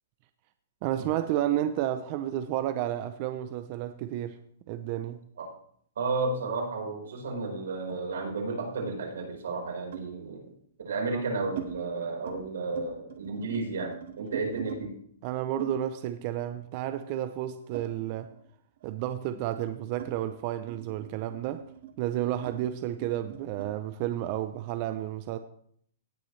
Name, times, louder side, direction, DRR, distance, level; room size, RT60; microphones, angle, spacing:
voice 1, 0.8-4.4 4.7-5.3 11.1-11.2 15.2-18.3 18.8-21.6 22.0-25.4, right 12 dB, 35° right, 0.5 m, -31 dB
voice 2, 6.0-10.5 10.8-14.9, right 3 dB, 85° right, 4.3 m, -32 dB
sound 1, 7.0-8.6 9.9-10.2 10.9-11.7 12.1-12.4 12.7-14.8 15.6-18.5 18.8-23.7, right 9 dB, 55° right, 1.6 m, -44 dB
17.0 x 7.1 x 3.2 m
hypercardioid pair, 165°, 0 cm